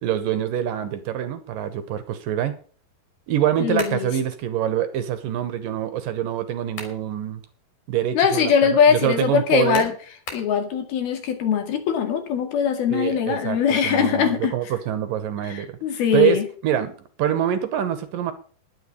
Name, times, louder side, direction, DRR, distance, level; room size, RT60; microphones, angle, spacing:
voice 1, 0.0-2.5 3.3-7.4 7.9-9.9 12.9-13.6 13.8-15.8 16.1-16.4 16.6-18.3, right 10 dB, 70° right, 11 dB, 2.4 m, -25 dB
voice 2, 3.6-4.1 8.2-9.9 10.3-14.5 15.4-16.5, left 7 dB, 75° left, 7 dB, 3.9 m, -21 dB
sound 1, 3.8-4.1 6.4-7.1 7.5-7.6 9.7-10.6, left 4 dB, 55° left, 4.9 m, -36 dB
11.5 x 9.8 x 6.6 m, 0.42 s
omnidirectional pair, 4.5 m